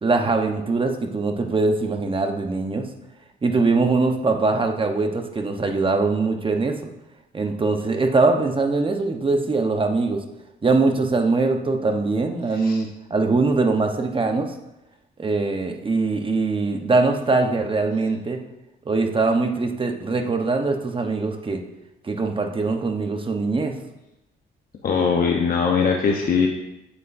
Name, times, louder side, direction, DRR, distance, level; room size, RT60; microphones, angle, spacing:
voice 1, 0.0-2.9 3.4-6.8 7.3-10.2 10.6-14.5 15.2-18.4 18.8-21.6 22.0-23.7, right 3 dB, 25° right, 4 dB, 0.9 m, -22 dB
voice 2, 24.8-26.5, left 5 dB, 45° left, 0 dB, 0.9 m, -21 dB
8.2 x 8.1 x 2.6 m, 0.91 s
cardioid pair, 90°, 20 cm